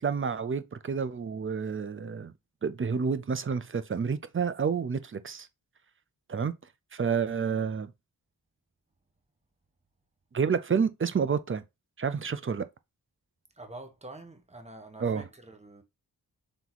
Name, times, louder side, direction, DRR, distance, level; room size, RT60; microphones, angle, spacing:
voice 1, 0.0-2.3 2.6-5.5 6.3-6.5 6.9-7.9 10.3-11.6 12.0-12.6 15.0-15.3, right 6 dB, 30° right, 0.5 m, -29 dB
voice 2, 13.6-15.8, right 2 dB, 15° right, 1.0 m, -46 dB
3.5 x 3.0 x 4.0 m
cardioid pair, 55°, 39 cm